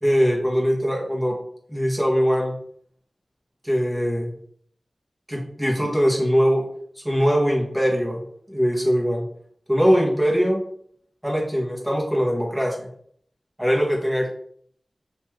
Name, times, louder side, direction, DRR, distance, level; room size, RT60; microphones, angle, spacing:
voice 1, 0.0-1.4 1.7-2.5 3.6-4.3 5.3-6.6 7.0-8.2 8.5-9.2 9.7-10.6 11.2-12.9 13.6-14.3, equal, 10° right, -2 dB, 1.2 m, -21 dB
3.5 x 3.0 x 3.1 m, 0.65 s
wide cardioid pair, 55°, 0 cm